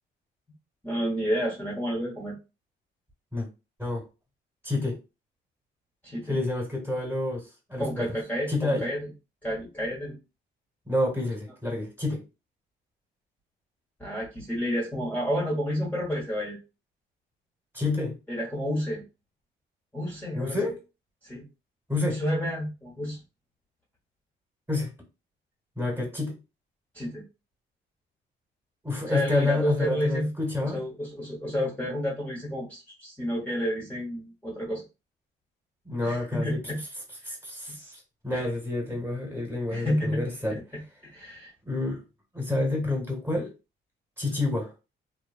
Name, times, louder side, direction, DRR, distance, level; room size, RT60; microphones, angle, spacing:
voice 1, 0.8-2.3 6.0-6.4 7.8-9.0 9.4-10.2 14.0-16.6 18.3-19.0 19.9-20.6 21.2-21.4 22.1-23.2 26.9-27.2 29.0-30.3 30.6-34.8 36.0-36.8 38.3-38.4 39.7-40.2 40.5-40.8 41.1-41.5, equal, 10° left, 1.0 m, -30 dB
voice 2, 4.6-5.0 6.3-8.1 8.5-8.8 10.9-12.2 17.7-18.2 20.3-20.8 21.9-22.2 24.7-24.9 25.8-26.3 28.8-30.8 35.8-36.6 37.2-40.6 41.6-42.0 42.3-43.5 44.2-44.7, left 2 dB, 10° right, 1.3 m, -29 dB
3.0 x 2.2 x 2.4 m
cardioid pair, 90°, 20 cm